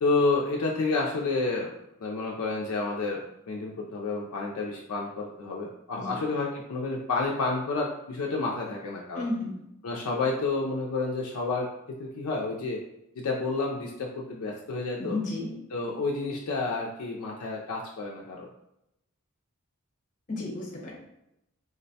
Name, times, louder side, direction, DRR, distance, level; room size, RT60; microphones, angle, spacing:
voice 1, 0.0-1.7 2.0-9.3 9.8-12.8 13.2-15.2 15.7-18.5, left 3 dB, 70° left, -1 dB, 0.4 m, -30 dB
voice 2, 9.1-9.5 15.0-15.5 20.3-21.0, left 2 dB, 35° left, -3 dB, 0.8 m, -33 dB
3.8 x 2.1 x 2.7 m, 0.84 s
head